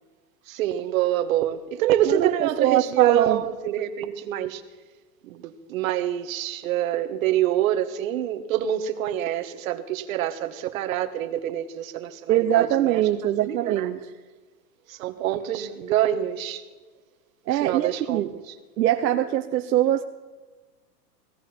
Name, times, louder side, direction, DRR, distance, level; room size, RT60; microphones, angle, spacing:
voice 1, 0.5-4.6 5.2-13.0 13.4-13.9 14.9-16.6 17.5-18.2, right 11 dB, 55° right, 8 dB, 1.4 m, -26 dB
voice 2, 2.1-3.4 12.3-14.1 17.5-18.3 18.8-20.0, right 12 dB, 85° right, 5 dB, 0.9 m, -22 dB
17.5 x 16.5 x 4.4 m, 1.3 s
supercardioid pair, 155°, 49 cm